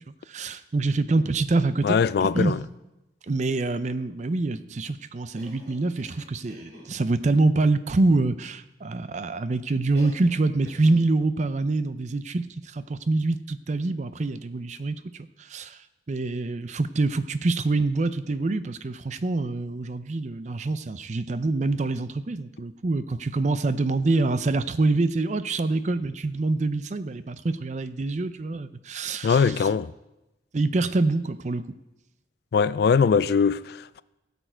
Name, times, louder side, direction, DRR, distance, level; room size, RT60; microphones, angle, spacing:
voice 1, 0.0-2.5 3.3-15.8 16.1-29.7 30.5-31.6, right 3 dB, 40° right, 0.5 m, -26 dB
voice 2, 1.8-2.6 29.2-29.9 32.5-34.0, left 6 dB, 60° left, 0.3 m, -21 dB
Cough, 5.4-6.9 9.9-10.4 10.7-11.0, left 1 dB, 65° right, 3.0 m, -46 dB
16.5 x 6.9 x 4.5 m
head